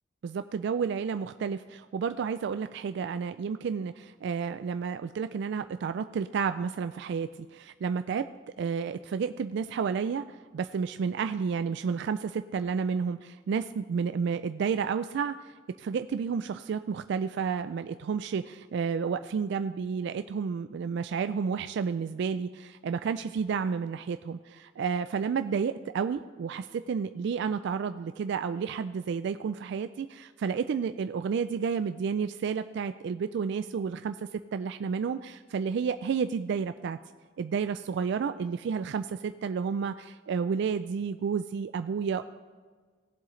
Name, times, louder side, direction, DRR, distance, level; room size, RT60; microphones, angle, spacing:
voice 1, 0.2-8.3 8.6-37.0 37.4-42.3, right 6 dB, 65° right, 10 dB, 0.3 m, -31 dB
17.5 x 7.6 x 3.2 m, 1.6 s
head